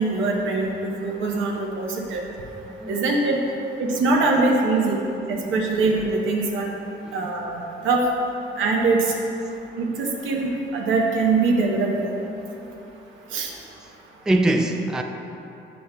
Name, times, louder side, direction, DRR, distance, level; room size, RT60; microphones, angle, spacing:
voice 1, 0.0-2.2 2.9-3.4 3.8-5.0 5.3-6.7 7.1-8.0 8.6-9.1 9.8-12.1 13.3-13.5, right 3 dB, 80° right, -1 dB, 0.9 m, -22 dB
voice 2, 2.7-3.0 5.7-5.8 7.1-7.2 14.3-15.0, right 1 dB, 5° right, 3 dB, 0.3 m, -22 dB
8.0 x 5.4 x 2.2 m, 3.0 s
cardioid pair, 90°, 20 cm